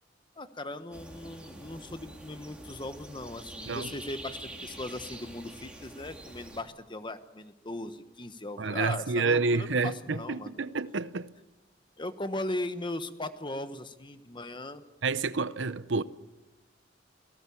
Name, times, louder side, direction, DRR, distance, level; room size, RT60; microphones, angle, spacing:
voice 1, 0.4-10.6 12.0-14.8, left 2 dB, 25° left, 1.2 m, -38 dB
sound 1, 0.9-6.6, right 1 dB, 5° right, 3.4 m, -45 dB
voice 2, 8.6-11.3 15.0-16.0, right 4 dB, 75° right, 0.8 m, -29 dB
27.5 x 18.0 x 7.1 m
head